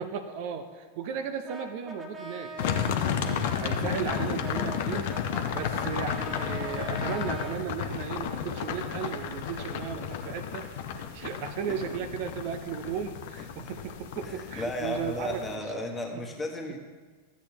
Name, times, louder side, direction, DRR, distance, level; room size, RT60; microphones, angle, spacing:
voice 1, 0.0-15.4 15.7-15.8 16.1-16.3, right 7 dB, 45° right, 8 dB, 0.6 m, -36 dB
Brass instrument, 1.5-7.6, right 1 dB, 15° right, 1.1 m, -42 dB
sound 1, 2.6-15.6, left 8 dB, 50° left, 0.7 m, -33 dB
voice 2, 14.2-16.8, left 1 dB, 15° left, 1 dB, 1.3 m, -34 dB
13.0 x 8.1 x 2.9 m, 1.4 s
figure-of-eight pair, 90°, 0 cm